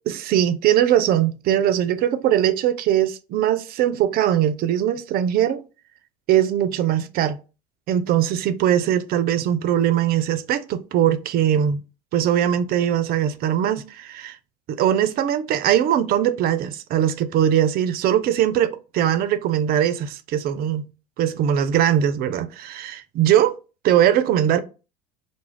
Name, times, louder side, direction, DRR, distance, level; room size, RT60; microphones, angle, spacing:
voice 1, 0.1-5.6 6.3-7.4 7.9-11.8 12.1-14.4 14.7-20.9 21.2-23.6 23.8-24.6, right 10 dB, 45° right, 0.4 m, -21 dB
2.3 x 2.1 x 3.2 m
hypercardioid pair, 85°, 21 cm